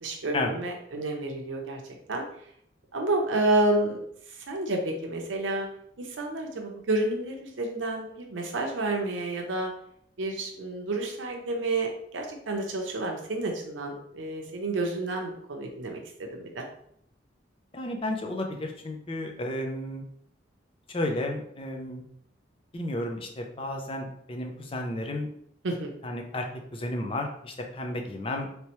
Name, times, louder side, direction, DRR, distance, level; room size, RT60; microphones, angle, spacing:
voice 1, 0.0-1.8 2.1-2.2 2.9-4.0 4.5-5.7 6.0-9.7 10.2-16.0 16.3-16.6 25.6-25.9, right 2 dB, 85° right, 2 dB, 0.6 m, -29 dB
voice 2, 17.7-20.0 20.9-22.0 22.7-25.3 26.0-26.5 26.7-28.5, left 1 dB, 30° left, 2 dB, 0.5 m, -32 dB
3.3 x 3.1 x 2.9 m, 0.68 s
head